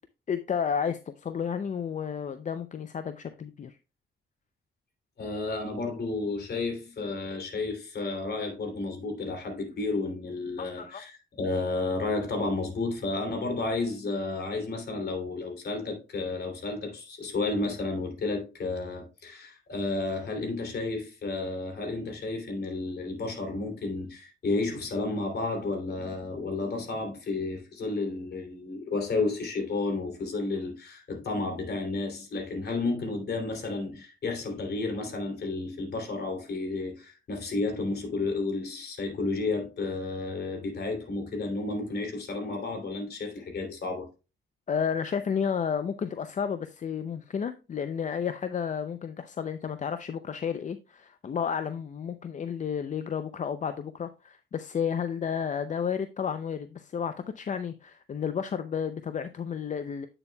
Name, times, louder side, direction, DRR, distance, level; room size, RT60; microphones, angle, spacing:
voice 1, 0.3-3.8 10.6-11.0 44.7-60.1, left 7 dB, 40° left, 0.5 m, -32 dB
voice 2, 5.2-44.1, left 3 dB, 55° left, 2.9 m, -32 dB
8.7 x 6.9 x 2.3 m
cardioid pair, 90°, 20 cm